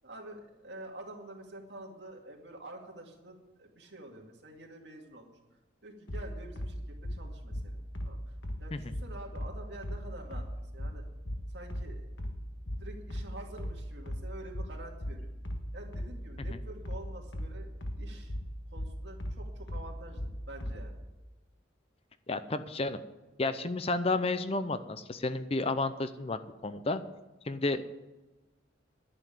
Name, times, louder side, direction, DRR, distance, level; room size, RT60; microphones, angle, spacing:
voice 1, 0.0-5.3 5.8-8.2 8.6-11.0 11.5-12.1 12.8-15.3 15.7-18.3 18.7-21.0, right 1 dB, 60° right, 1 dB, 2.3 m, -48 dB
sound 1, 6.1-20.9, equal, 70° left, 1.4 m, -37 dB
voice 2, 22.3-23.0 23.4-27.0 27.4-27.9, left 2 dB, 30° left, 12 dB, 0.5 m, -31 dB
11.0 x 7.0 x 9.2 m, 1.1 s
head